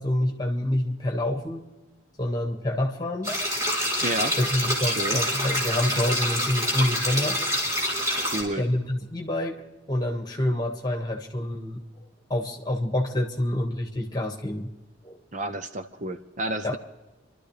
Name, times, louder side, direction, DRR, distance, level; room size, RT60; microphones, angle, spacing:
voice 1, 0.0-1.6 2.2-3.3 4.4-7.4 8.6-9.6 9.9-11.8 12.3-14.7 15.0-15.2 16.6-16.8, left 1 dB, 20° left, 3 dB, 1.7 m, -27 dB
sound 1, 3.2-8.4, equal, 15° right, 4.0 m, -26 dB
voice 2, 4.0-4.4 4.8-5.2 8.2-8.7 15.3-16.8, right 1 dB, 40° right, 8 dB, 0.7 m, -31 dB
29.0 x 12.5 x 3.3 m, 1.1 s
head